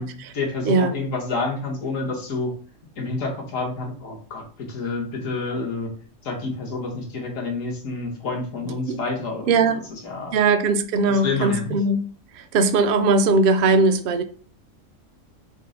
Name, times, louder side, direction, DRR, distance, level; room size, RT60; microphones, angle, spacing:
voice 1, 0.0-2.5 3.0-5.9 6.2-10.4 11.1-11.8, left 3 dB, 70° left, 1.5 m, -29 dB
voice 2, 9.5-9.8 10.3-12.0 12.5-14.2, right 3 dB, 65° right, 0.5 m, -19 dB
5.4 x 2.0 x 3.7 m
omnidirectional pair, 1.4 m